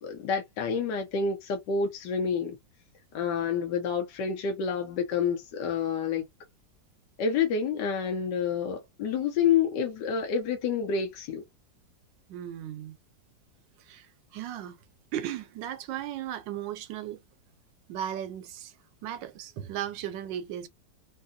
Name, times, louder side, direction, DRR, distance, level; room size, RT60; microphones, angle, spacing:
voice 1, 0.0-2.6 3.1-6.3 7.2-11.4, left 6 dB, 75° left, 1.5 m, -28 dB
voice 2, 12.3-13.0 13.8-14.8 15.1-17.2 17.9-18.7 19.0-20.7, right 11 dB, 85° right, 1.3 m, -36 dB
3.9 x 2.3 x 2.5 m
omnidirectional pair, 2.0 m